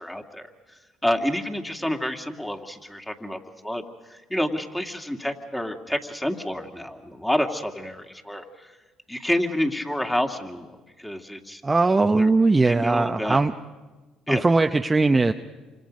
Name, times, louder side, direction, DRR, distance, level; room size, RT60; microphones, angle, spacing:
voice 1, 0.0-8.7 9.1-10.7 11.0-11.6 12.2-12.3 12.6-13.4 14.3-14.4, left 1 dB, 10° left, 3 dB, 2.3 m, -29 dB
voice 2, 11.6-13.5 14.3-15.3, right 3 dB, 20° right, 6 dB, 0.7 m, -20 dB
28.0 x 26.0 x 5.3 m, 1.2 s
supercardioid pair, 70°, 0 cm